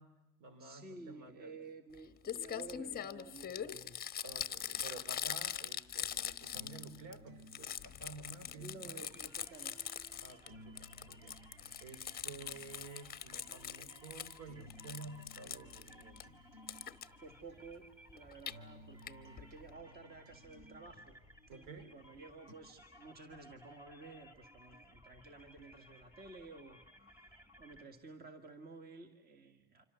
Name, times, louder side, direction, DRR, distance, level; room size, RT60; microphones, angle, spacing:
voice 1, 0.0-1.6 4.2-9.1 10.2-11.4 11.8-16.4 21.5-22.0, right 3 dB, 55° right, 12 dB, 2.9 m, -52 dB
voice 2, 0.6-4.0 8.6-9.7 17.2-21.2 21.9-26.8 27.1-29.8, right 3 dB, 25° right, 6 dB, 1.7 m, -53 dB
Crumpling crinkling, 1.9-2.0 2.2-7.1 7.4-10.5 10.8-14.4 14.7-16.2 16.7-17.1 18.2-18.5 19.1-19.2 19.4-19.5 19.7-19.8, left 9 dB, 25° left, 1.0 m, -42 dB
sound 1, 6.5-22.5, equal, 80° right, 3.2 m, -59 dB
sound 2, 9.0-27.8, equal, 5° right, 2.7 m, -60 dB
26.5 x 25.0 x 6.8 m, 1.1 s
cardioid pair, 140°, 39 cm